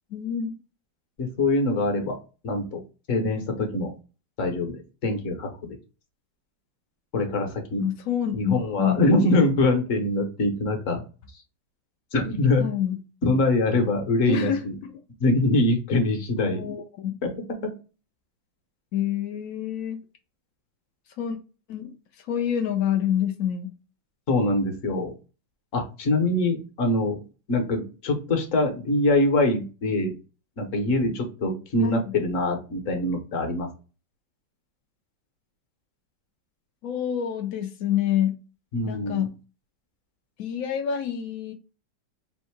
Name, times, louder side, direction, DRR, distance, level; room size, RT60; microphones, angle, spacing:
voice 1, 0.1-0.5 7.8-9.1 12.6-13.0 14.3-14.6 14.9-15.0 16.4-17.2 18.9-20.0 21.2-21.4 21.7-21.9 22.3-23.7 31.8-32.1 36.8-38.4 38.9-39.3 40.4-41.5, left 9 dB, 80° left, 0.7 m, -27 dB
voice 2, 1.2-2.2 2.4-2.8 3.1-3.9 4.4-5.8 7.1-7.8 8.3-11.0 12.1-12.7 13.2-14.7 15.2-16.6 17.2-17.7 24.3-25.1 25.7-27.2 27.5-30.1 30.6-33.7 38.7-39.3, left 2 dB, 50° left, 1.1 m, -24 dB
3.5 x 2.7 x 4.4 m
omnidirectional pair, 2.1 m